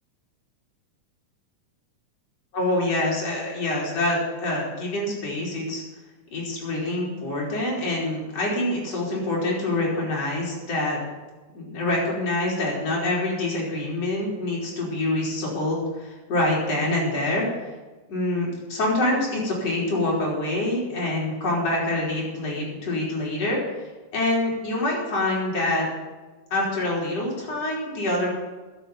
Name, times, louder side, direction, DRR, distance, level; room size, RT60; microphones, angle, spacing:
voice 1, 2.5-5.8 6.3-11.0 11.5-17.5 18.1-23.6 24.1-25.9 26.5-28.3, left 2 dB, 45° left, -3 dB, 4.8 m, -26 dB
10.5 x 7.9 x 9.7 m, 1.2 s
omnidirectional pair, 3.8 m